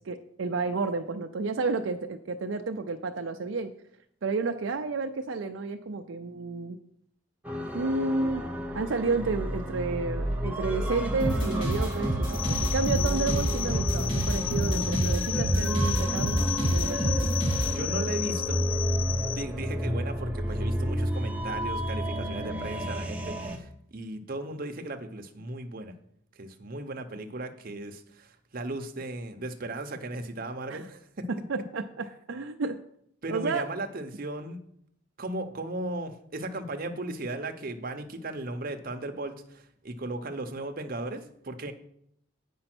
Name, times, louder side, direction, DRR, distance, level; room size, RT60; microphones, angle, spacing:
voice 1, 0.1-3.7 4.2-6.8 7.7-8.4 8.7-16.4 16.7-17.1 30.7-30.9 31.3-32.8 33.3-33.6, right 3 dB, 70° right, 6 dB, 0.5 m, -31 dB
sound 1, 7.4-23.6, equal, 5° right, 0.8 m, -31 dB
sound 2, 11.2-17.7, right 1 dB, 70° left, 3.2 m, -28 dB
sound 3, 12.3-19.4, left 12 dB, 30° left, 0.4 m, -34 dB
voice 2, 17.6-18.6 19.3-25.9 26.4-31.3 33.2-34.6 35.2-41.7, right 2 dB, 45° right, 5 dB, 0.8 m, -36 dB
8.8 x 5.4 x 6.0 m, 0.71 s
head